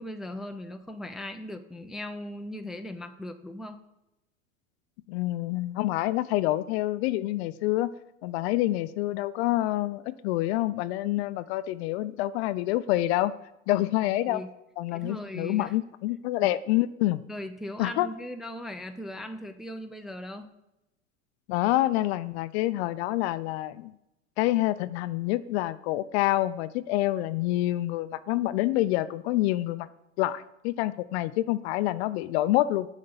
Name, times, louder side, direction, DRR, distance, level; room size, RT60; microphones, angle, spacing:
voice 1, 0.0-3.8 13.7-14.5 14.9-15.8 17.3-20.5, left 1 dB, ahead, 6 dB, 0.5 m, -39 dB
voice 2, 5.1-7.9 8.2-13.3 13.7-14.4 14.8-17.2 17.8-18.1 21.5-23.9 24.4-29.9 30.2-32.9, left 16 dB, 55° left, 15 dB, 0.5 m, -27 dB
6.6 x 5.2 x 7.0 m, 0.88 s
hypercardioid pair, 85°, 40 cm